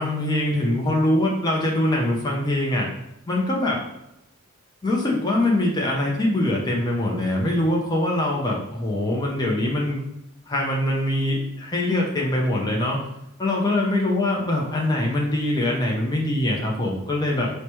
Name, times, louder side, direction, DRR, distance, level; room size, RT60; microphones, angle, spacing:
voice 1, 0.0-2.9 3.3-3.8 4.8-10.0 10.5-13.0 13.4-17.5, left 1 dB, 20° left, -2 dB, 0.5 m, -23 dB
4.7 x 2.1 x 2.9 m, 0.83 s
head